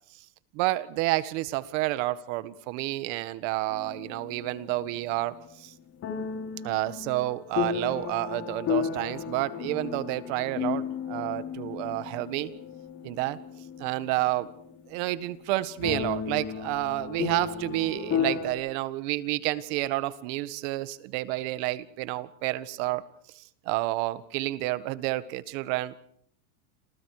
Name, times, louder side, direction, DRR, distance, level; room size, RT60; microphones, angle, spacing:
voice 1, 0.5-5.7 6.6-12.5 13.0-13.4 13.8-14.5 14.9-23.0 23.3-25.9, right 17 dB, 50° right, 13 dB, 1.8 m, -30 dB
sound 1, 3.7-5.0 6.0-14.8 15.1-15.2 15.8-18.5, left 7 dB, 30° left, 4.1 m, -34 dB
29.5 x 27.0 x 5.0 m, 0.63 s
supercardioid pair, 160°, 46 cm